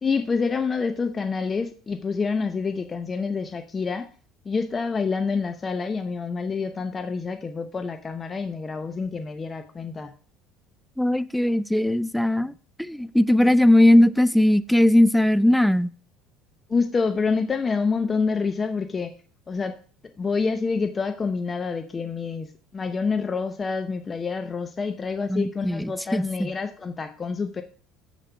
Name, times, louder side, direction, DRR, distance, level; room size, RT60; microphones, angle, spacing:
voice 1, 0.0-4.1 4.5-10.1 16.7-19.1 19.5-19.7 20.2-22.5 22.7-27.6, left 4 dB, 30° left, 0.7 m, -27 dB
voice 2, 11.0-12.5 12.8-15.9 25.3-26.5, left 1 dB, 5° left, 0.4 m, -19 dB
7.6 x 6.8 x 4.5 m
supercardioid pair, 85°, 0 cm